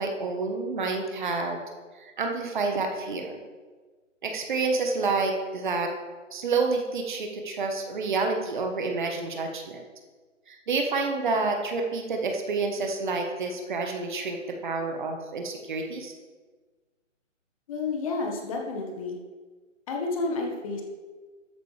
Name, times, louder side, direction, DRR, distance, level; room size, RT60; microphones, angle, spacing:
voice 1, 0.0-1.6 2.0-3.4 4.2-5.9 6.3-9.8 10.5-16.1, right 3 dB, 40° right, 3 dB, 1.3 m, -29 dB
voice 2, 17.7-19.2 19.9-20.8, left 3 dB, 25° left, 1 dB, 1.4 m, -30 dB
13.0 x 8.7 x 3.3 m, 1.4 s
figure-of-eight pair, 150°, 39 cm